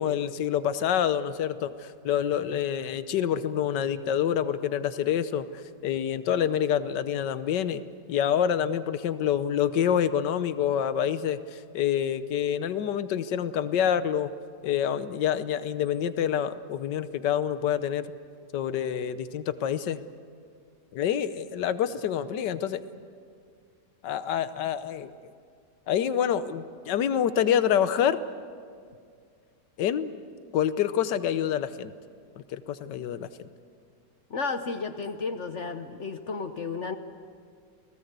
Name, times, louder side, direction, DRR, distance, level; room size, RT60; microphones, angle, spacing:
voice 1, 0.0-5.5 5.8-7.8 8.1-14.3 14.6-18.1 18.5-20.0 20.9-22.8 24.0-25.1 25.9-28.2 29.8-30.1 30.5-31.9 32.5-33.3, left 9 dB, 85° left, 12 dB, 1.5 m, -27 dB
voice 2, 34.3-37.0, left 4 dB, 50° left, 9 dB, 1.1 m, -33 dB
30.0 x 19.0 x 8.1 m, 2.2 s
omnidirectional pair, 1.8 m